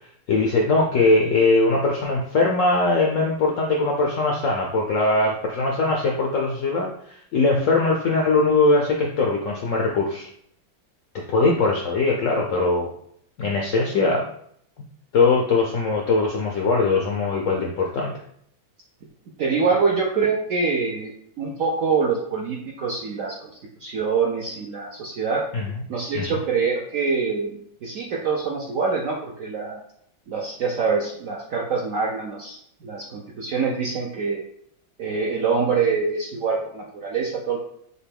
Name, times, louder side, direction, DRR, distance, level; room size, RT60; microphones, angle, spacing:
voice 1, 0.3-10.3 11.3-12.9 13.4-14.3 15.1-18.1 25.5-25.7 26.1-26.3, left 3 dB, 85° left, 0 dB, 0.7 m, -21 dB
voice 2, 19.4-23.5 23.8-25.5 25.9-29.8 30.3-34.4 35.0-37.6, right 5 dB, 75° right, -1 dB, 0.7 m, -25 dB
6.5 x 2.2 x 3.5 m, 0.67 s
omnidirectional pair, 2.1 m